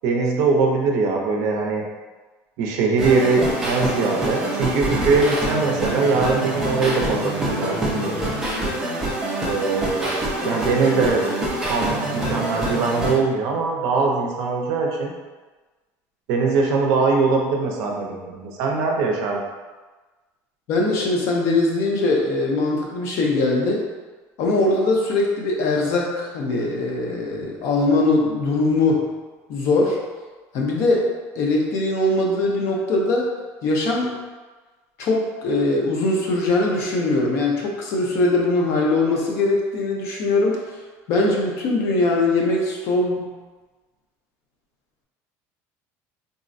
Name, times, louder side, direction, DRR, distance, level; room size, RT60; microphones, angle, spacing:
voice 1, 0.0-1.8 2.6-8.2 9.5-11.2 11.7-15.1 16.3-19.4, right 4 dB, 55° right, 0 dB, 0.5 m, -22 dB
sound 1, 3.0-13.1, right 1 dB, 10° right, 0.5 m, -25 dB
voice 2, 20.7-23.9 24.4-29.1 29.5-30.0 30.5-33.3 33.6-34.2 35.0-40.6 41.1-43.3, left 2 dB, 50° left, -1 dB, 0.5 m, -21 dB
3.6 x 2.1 x 2.5 m, 1.3 s
cardioid pair, 175°, 7 cm